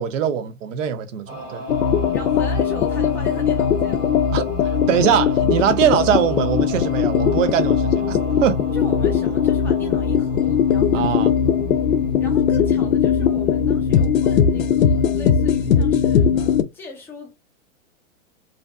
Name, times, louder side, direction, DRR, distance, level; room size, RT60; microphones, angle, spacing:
voice 1, 0.0-1.6 4.3-8.6 10.9-11.3, right 9 dB, 65° right, 0.6 m, -22 dB
sound 1, 1.3-16.5, right 2 dB, 20° right, 0.7 m, -36 dB
sound 2, 1.7-16.6, left 8 dB, 85° left, 0.5 m, -19 dB
voice 2, 2.1-4.1 8.7-11.1 12.2-17.3, left 2 dB, 5° left, 0.4 m, -39 dB
2.7 x 2.4 x 2.2 m
hypercardioid pair, 130°, 40 cm